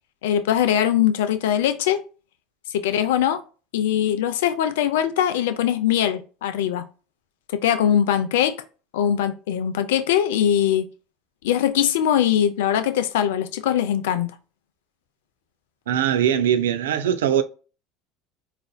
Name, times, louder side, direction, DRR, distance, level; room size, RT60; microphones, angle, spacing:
voice 1, 0.2-2.0 2.7-3.4 3.7-6.8 7.6-8.6 8.9-10.9 11.4-14.3, left 10 dB, 75° left, 0.4 m, -21 dB
voice 2, 15.9-17.4, right 9 dB, 80° right, 0.3 m, -21 dB
4.1 x 2.5 x 2.2 m
hypercardioid pair, 75°, 0 cm